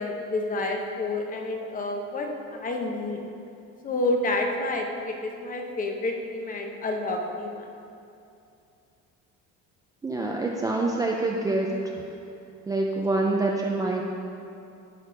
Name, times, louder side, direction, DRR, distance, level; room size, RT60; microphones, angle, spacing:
voice 1, 0.0-3.2 3.8-7.7, left 2 dB, 25° left, 2 dB, 0.9 m, -29 dB
voice 2, 10.0-11.9 12.7-14.0, right 2 dB, 10° right, -1 dB, 0.4 m, -26 dB
12.5 x 4.3 x 5.1 m, 2.6 s
cardioid pair, 160°, 31 cm